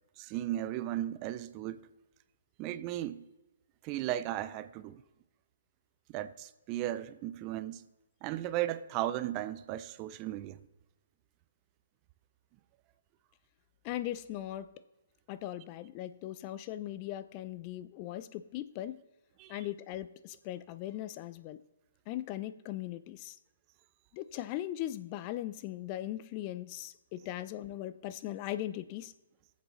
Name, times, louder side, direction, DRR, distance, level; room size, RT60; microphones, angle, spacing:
voice 1, 0.2-1.9 2.6-3.2 3.8-5.0 6.1-7.8 8.2-10.6 19.4-19.6, right 13 dB, 30° right, 0.4 m, -36 dB
voice 2, 13.8-14.7 15.3-19.0 19.5-21.6 22.1-23.4 24.1-29.1, left 13 dB, 35° left, 0.4 m, -39 dB
17.5 x 7.3 x 3.1 m
hypercardioid pair, 135°, 0 cm